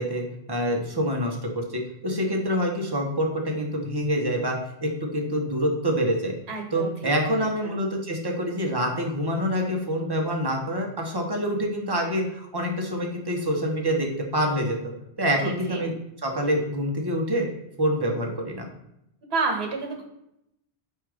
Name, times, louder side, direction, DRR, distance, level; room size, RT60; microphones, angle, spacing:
voice 1, 0.0-6.3 6.7-14.1 14.3-14.9 15.2-15.9 16.2-17.5 17.8-18.7, equal, 30° right, 1 dB, 0.6 m, -26 dB
voice 2, 6.5-7.8 15.4-15.9 19.3-20.0, right 4 dB, 80° right, 2 dB, 1.2 m, -30 dB
4.4 x 2.4 x 4.8 m, 0.82 s
omnidirectional pair, 1.1 m